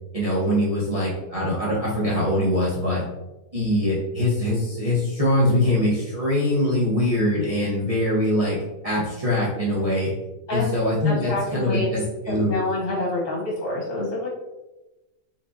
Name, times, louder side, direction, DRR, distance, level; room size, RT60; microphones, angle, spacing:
voice 1, 0.1-3.0 3.5-8.6 8.8-10.1 10.5-12.0 12.3-12.5, left 1 dB, 30° right, -8 dB, 0.9 m, -23 dB
voice 2, 10.5-10.8 11.0-12.0 12.3-14.3, left 2 dB, 65° left, -3 dB, 1.8 m, -27 dB
4.8 x 3.7 x 2.6 m, 1.0 s
omnidirectional pair, 1.5 m